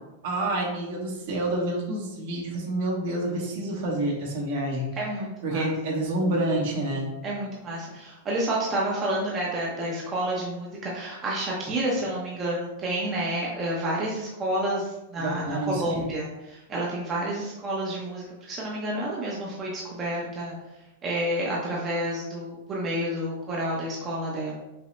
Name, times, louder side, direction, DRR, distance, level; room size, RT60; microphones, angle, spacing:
voice 1, 0.2-4.9 5.4-7.1 15.2-16.1, right 1 dB, 55° right, -2 dB, 1.1 m, -28 dB
voice 2, 5.0-5.7 7.2-20.5 21.0-24.5, right 1 dB, 20° right, -4 dB, 0.6 m, -29 dB
5.4 x 2.0 x 3.2 m, 0.98 s
supercardioid pair, 160°, 0 cm